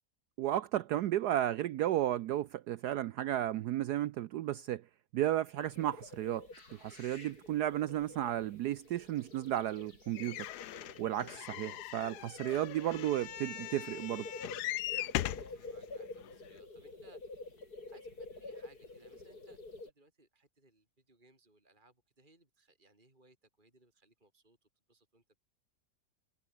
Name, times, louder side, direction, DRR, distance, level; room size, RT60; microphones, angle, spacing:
voice 1, 0.4-4.8 5.1-6.5 6.8-10.5 11.0-14.3, right 12 dB, 70° right, 1.1 m, -33 dB
sound 1, 5.6-19.9, left 2 dB, 55° left, 5.8 m, -49 dB
sound 2, 10.1-15.5 16.2-16.3 16.6-16.7, left 15 dB, 70° left, 1.1 m, -40 dB
voice 2, 11.6-11.9 15.4-17.2 17.9-25.5, right 2 dB, 25° right, 4.6 m, -65 dB
omnidirectional pair, 2.0 m